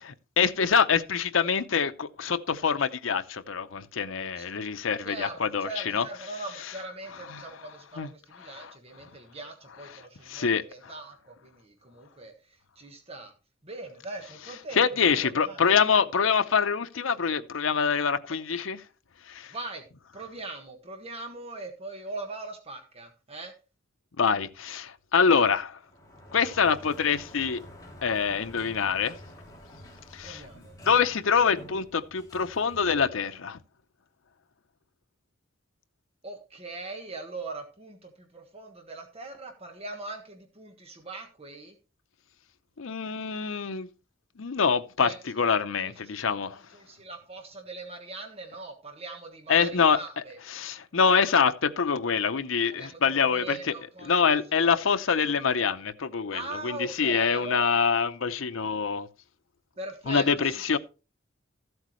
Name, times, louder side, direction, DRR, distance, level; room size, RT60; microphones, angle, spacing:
voice 1, 0.0-6.0 7.3-7.4 8.0-8.1 8.6-8.7 10.3-10.6 14.8-18.8 19.3-19.5 24.2-25.8 26.3-27.6 28.0-29.2 30.1-30.4 30.9-33.6 42.8-43.9 44.4-45.1 45.4-46.6 49.5-50.0 50.5-53.6 54.1-59.1 60.1-60.8, left 6 dB, 90° left, 0.7 m, -25 dB
voice 2, 5.0-13.3 13.6-15.7 19.5-19.8 20.1-23.5 30.2-30.7 36.2-41.7 45.0-45.2 45.8-50.4 52.8-54.7 56.3-57.8 59.8-60.8, right 2 dB, 30° right, 1.4 m, -41 dB
Sliding door, 25.8-33.6, equal, 20° left, 2.8 m, -49 dB
14.0 x 8.0 x 3.1 m
head